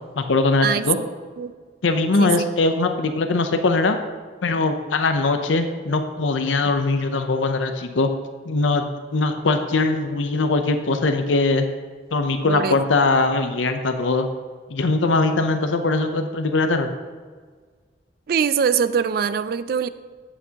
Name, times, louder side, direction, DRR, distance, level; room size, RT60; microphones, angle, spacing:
voice 1, 0.2-1.0 1.8-4.0 4.4-8.1 8.5-11.7 12.1-14.3 14.7-16.9, left 3 dB, 90° left, 7 dB, 0.6 m, -21 dB
voice 2, 12.5-12.8 18.3-19.9, right 7 dB, 50° right, 14 dB, 0.3 m, -22 dB
11.0 x 8.4 x 2.9 m, 1.5 s
head